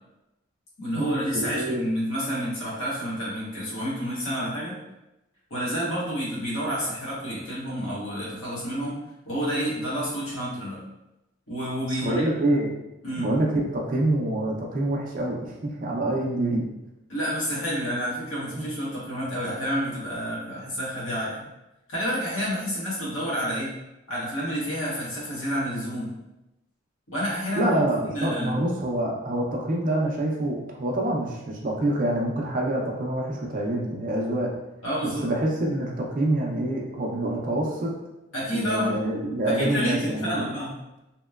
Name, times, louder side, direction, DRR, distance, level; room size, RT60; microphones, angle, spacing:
voice 1, 0.8-4.8 5.5-9.0 9.3-10.8 11.5-12.2 13.0-13.3 17.1-21.5 21.9-23.8 24.1-26.1 27.1-27.7 28.1-28.6 34.8-35.3 38.3-39.0 39.4-40.8, equal, 85° left, -7 dB, 1.0 m, -29 dB
voice 2, 1.3-1.8 11.9-12.7 13.2-16.6 18.6-18.7 27.5-34.5 35.0-38.0 38.5-40.4, right 1 dB, 40° right, -2 dB, 0.4 m, -26 dB
2.9 x 2.1 x 2.2 m, 0.95 s
head